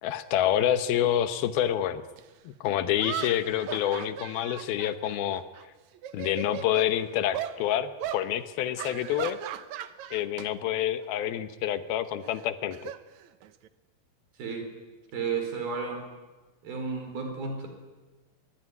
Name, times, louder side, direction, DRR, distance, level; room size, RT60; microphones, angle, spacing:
voice 1, 0.0-2.0 2.5-5.4 6.1-9.4 10.1-12.9, left 11 dB, 85° left, 11 dB, 3.0 m, -27 dB
sound 1, 2.2-2.3 3.0-5.6 5.9-6.9 7.3-7.6 8.0-8.2 8.8-10.5 10.8-11.1 12.2-13.7, right 11 dB, 70° right, 1.9 m, -38 dB
voice 2, 15.1-16.0 16.6-17.7, right 5 dB, 90° right, 5 dB, 6.5 m, -32 dB
25.5 x 22.0 x 9.7 m, 1.3 s
omnidirectional pair, 4.2 m